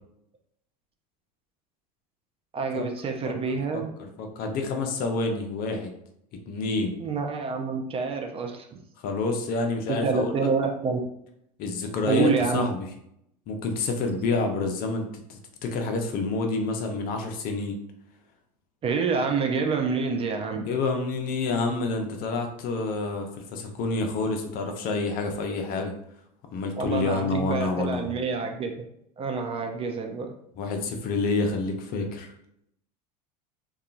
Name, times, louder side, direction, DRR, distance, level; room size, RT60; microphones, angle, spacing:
voice 1, 2.5-3.9 7.0-8.8 10.0-11.0 12.1-12.6 18.8-20.7 26.8-28.8 29.2-30.4, right 5 dB, 25° right, 3 dB, 0.4 m, -27 dB
voice 2, 3.7-5.9 6.5-6.9 9.0-10.3 11.6-12.9 13.5-17.8 20.7-25.9 26.5-28.1 30.6-32.3, left 3 dB, 45° left, 4 dB, 0.6 m, -28 dB
2.7 x 2.3 x 2.4 m, 0.75 s
hypercardioid pair, 85°, 21 cm